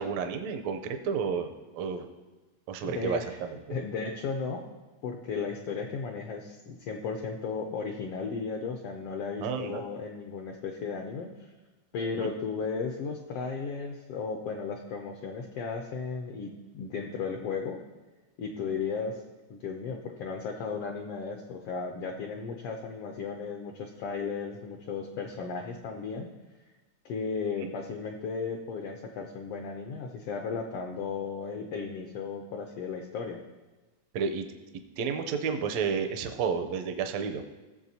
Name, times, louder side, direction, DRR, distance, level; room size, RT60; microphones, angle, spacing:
voice 1, 0.0-2.1 2.7-3.8 9.4-9.8 12.2-12.3 27.6-27.7 34.1-34.5 35.0-37.4, right 6 dB, 75° right, 6 dB, 1.8 m, -31 dB
voice 2, 2.8-3.4 3.7-4.7 5.0-11.3 11.9-17.8 18.4-19.2 19.5-26.3 27.0-33.4, left 5 dB, 80° left, 3 dB, 1.3 m, -35 dB
16.0 x 7.0 x 2.8 m, 1.2 s
omnidirectional pair, 3.4 m